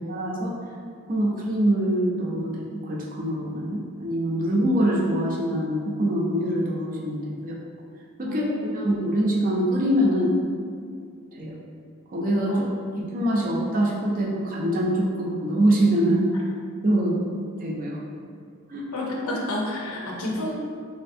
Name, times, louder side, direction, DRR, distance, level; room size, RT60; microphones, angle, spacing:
voice 1, 0.1-0.5 1.1-2.5 2.8-7.5 8.2-10.3 11.4-11.5 12.1-12.7 13.1-16.3 16.8-17.2 17.6-18.0 18.7-18.9, right 1 dB, 40° right, -3 dB, 0.5 m, -24 dB
voice 2, 8.2-8.8 12.4-12.7 18.9-20.5, left 1 dB, 90° left, -3 dB, 0.6 m, -30 dB
3.4 x 2.5 x 2.6 m, 2.2 s
head